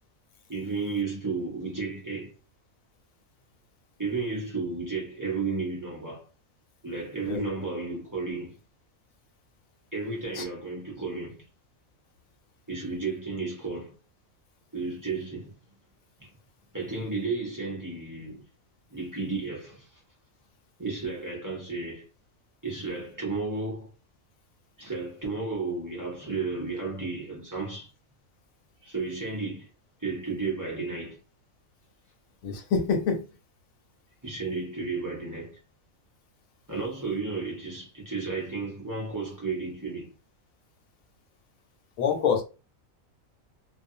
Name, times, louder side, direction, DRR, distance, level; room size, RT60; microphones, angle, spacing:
voice 1, 0.5-2.3 4.0-6.3 6.8-8.6 9.9-11.4 12.7-14.0 14.7-15.5 16.2-16.3 16.7-18.4 18.9-19.9 20.8-22.1 22.6-23.9 24.8-27.9 28.8-29.7 30.0-31.2 34.2-35.6 36.7-40.1, right 4 dB, 20° right, 0.5 m, -33 dB
voice 2, 32.4-33.3 42.0-42.4, left 6 dB, 80° left, 1.1 m, -26 dB
2.4 x 2.3 x 2.6 m
omnidirectional pair, 1.4 m